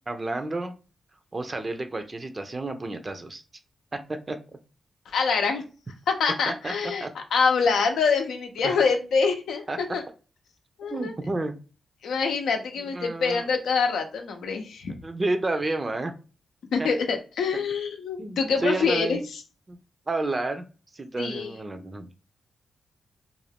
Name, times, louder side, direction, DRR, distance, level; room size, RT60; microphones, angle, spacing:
voice 1, 0.1-0.7 1.3-3.4 3.9-4.4 6.5-6.7 7.0-7.1 8.6-8.7 9.7-9.8 10.9-11.6 12.9-13.4 15.0-16.1 16.8-16.9 18.2-19.2 19.7-19.8 20.1-20.6 20.9-22.1, right 2 dB, 35° right, 7 dB, 0.5 m, -30 dB
voice 2, 5.1-5.6 6.1-10.0 10.8-11.1 12.0-14.9 16.7-19.2 21.2-21.5, left 5 dB, 85° left, 4 dB, 0.5 m, -25 dB
2.5 x 2.2 x 3.4 m, 0.34 s
cardioid pair, 55°, 0 cm